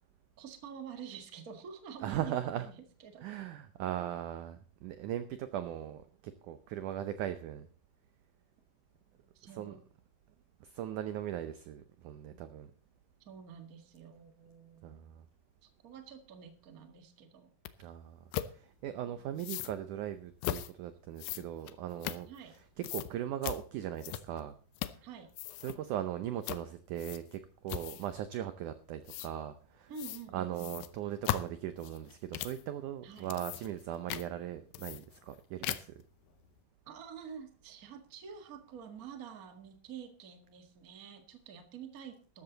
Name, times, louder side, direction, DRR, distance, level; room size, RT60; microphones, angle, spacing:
voice 1, 0.4-3.3 9.3-9.8 13.2-15.0 15.6-17.5 22.3-22.5 25.0-25.3 29.9-30.8 33.0-33.3 36.8-42.4, right 7 dB, 45° right, 6 dB, 1.2 m, -48 dB
voice 2, 2.0-2.7 3.2-7.7 9.4-9.8 10.6-12.7 14.8-15.2 17.8-18.2 18.5-24.5 25.0-25.1 25.6-30.0 30.3-35.9, right 11 dB, 85° right, 11 dB, 1.8 m, -39 dB
sound 1, 17.7-17.8 18.3-18.5 19.4-19.8 20.4-20.7 21.2-22.6 22.8-23.1 23.4-23.6 24.0-24.4 24.8-25.1 25.3-25.8 26.4-26.7 27.0-27.4 27.7-28.1 29.1-29.3 30.0-30.2 30.6-32.6 33.1-33.8 34.1-34.3 34.7-35.4 35.6-36.0, left 13 dB, 75° left, 2.1 m, -38 dB
13.5 x 13.0 x 4.0 m, 0.40 s
omnidirectional pair, 4.6 m